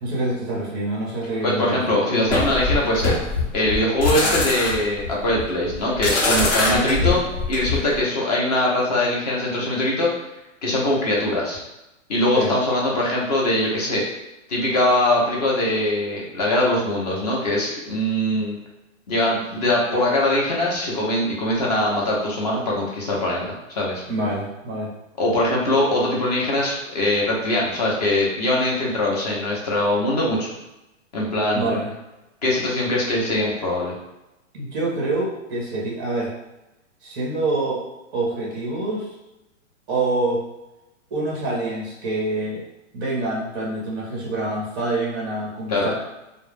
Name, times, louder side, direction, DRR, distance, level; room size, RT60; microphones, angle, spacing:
voice 1, 0.0-2.0 6.7-7.2 12.3-12.5 24.1-24.9 31.5-31.9 34.5-36.3 37.0-37.8 38.1-39.1 39.9-40.4 41.1-42.6 42.9-45.9, right 2 dB, 15° right, -4 dB, 0.4 m, -26 dB
voice 2, 1.4-3.2 3.5-7.2 7.5-10.1 10.6-11.6 12.1-14.0 14.5-18.6 19.1-24.0 25.2-30.5 31.1-31.8 32.4-33.9 45.7-45.9, left 1 dB, 30° left, -3 dB, 0.6 m, -22 dB
sound 1, 2.3-8.0, left 3 dB, 60° left, 0.9 m, -23 dB
2.2 x 2.0 x 3.2 m, 0.97 s
hypercardioid pair, 165°, 39 cm